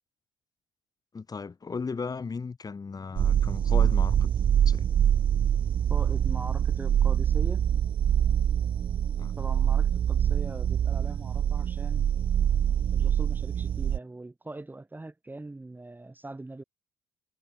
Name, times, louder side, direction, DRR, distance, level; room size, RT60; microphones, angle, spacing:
voice 1, 1.1-4.3 4.7-4.9 9.2-9.3, left 5 dB, 30° left, 3.2 m, -36 dB
sound 1, 3.2-14.0, right 9 dB, 40° right, 0.6 m, -25 dB
voice 2, 5.9-7.6 9.4-12.1 12.9-16.6, right 2 dB, 15° right, 2.9 m, -41 dB
hypercardioid pair, 55°, 13 cm